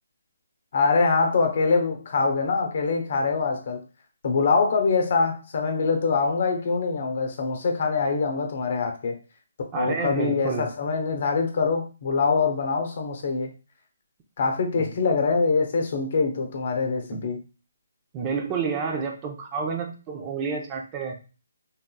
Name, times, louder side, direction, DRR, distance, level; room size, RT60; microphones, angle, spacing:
voice 1, 0.7-3.8 4.2-9.2 9.7-13.5 14.4-17.4, left 4 dB, 50° left, 5 dB, 0.9 m, -24 dB
voice 2, 9.7-10.7 14.8-14.9 17.1-17.3 18.1-21.1, right 5 dB, 25° right, 2 dB, 0.7 m, -29 dB
4.0 x 3.7 x 2.3 m, 0.34 s
hypercardioid pair, 155°, 0 cm